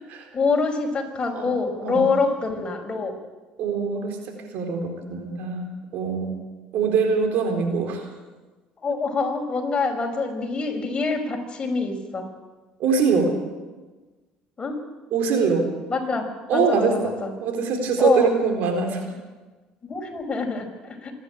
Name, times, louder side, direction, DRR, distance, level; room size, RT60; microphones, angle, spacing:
voice 1, 0.3-3.2 8.8-12.2 14.6-14.8 15.9-16.3 16.5-17.3 18.0-18.3 19.8-21.1, left 4 dB, 30° left, 3 dB, 5.4 m, -25 dB
voice 2, 3.6-6.3 6.7-8.1 12.8-13.4 15.1-15.8 16.5-19.1, right 5 dB, 65° right, 4 dB, 4.1 m, -23 dB
26.0 x 11.0 x 9.0 m, 1.3 s
hypercardioid pair, 70°, 3 cm